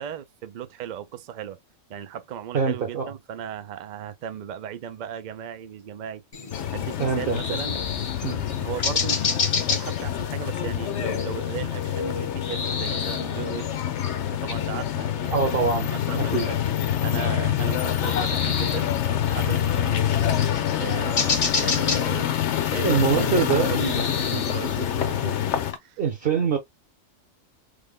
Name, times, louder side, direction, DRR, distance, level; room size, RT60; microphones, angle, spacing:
voice 1, 0.0-1.6 1.9-6.2 6.7-7.8 8.6-13.7 14.3-16.6 17.0-18.9 19.3-20.1 20.8-22.4 22.7-25.4 25.7-26.0 26.4-26.5, right 9 dB, 75° right, 0.4 m, -36 dB
voice 2, 2.5-3.1 7.0-7.6 8.2-8.4 15.3-16.5 22.8-23.7 26.0-26.6, right 6 dB, 50° right, 0.9 m, -24 dB
sound 1, 6.3-25.8, left 4 dB, 40° left, 0.5 m, -33 dB
sound 2, 6.5-25.7, left 10 dB, 65° left, 0.9 m, -26 dB
3.4 x 2.1 x 3.5 m
omnidirectional pair, 1.4 m